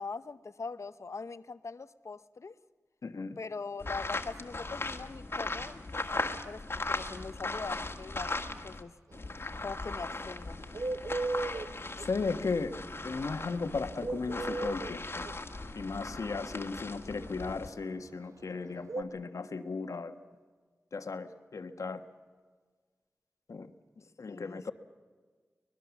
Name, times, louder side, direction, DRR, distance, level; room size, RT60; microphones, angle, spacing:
voice 1, 0.0-2.6 3.4-5.8 6.1-8.9 9.6-10.6 24.3-24.7, left 4 dB, 65° left, 14 dB, 0.8 m, -42 dB
voice 2, 3.0-3.4 12.0-12.7 13.0-15.3 15.7-20.2 20.9-22.0 23.5-23.7 24.2-24.7, left 4 dB, 85° left, 9 dB, 1.4 m, -36 dB
sound 1, 3.8-8.8 9.1-17.7, left 2 dB, 45° left, 1.7 m, -38 dB
Bird, 9.1-19.0, right 3 dB, 75° right, 1.0 m, -37 dB
25.0 x 20.5 x 7.2 m, 1.5 s
wide cardioid pair, 60°, 5 cm